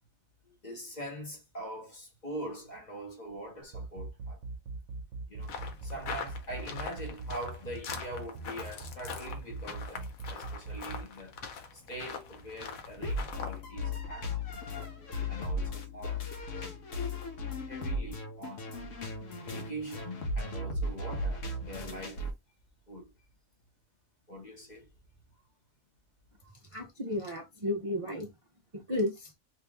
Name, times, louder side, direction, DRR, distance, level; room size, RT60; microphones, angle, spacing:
voice 1, 0.5-4.4 5.3-11.3 11.7-14.9 15.3-16.3 17.0-17.2 17.7-18.7 19.0-22.3 22.9-23.1 24.3-24.9, right 1 dB, 35° left, 0.9 m, -43 dB
sound 1, 3.6-11.0, right 3 dB, 65° right, 0.9 m, -40 dB
sound 2, 5.4-13.6, left 6 dB, 90° left, 1.2 m, -43 dB
sound 3, 13.0-22.3, left 1 dB, 70° left, 1.2 m, -36 dB
voice 2, 26.7-28.3 28.7-29.4, left 1 dB, 35° right, 0.5 m, -33 dB
2.9 x 2.9 x 3.4 m
omnidirectional pair, 1.4 m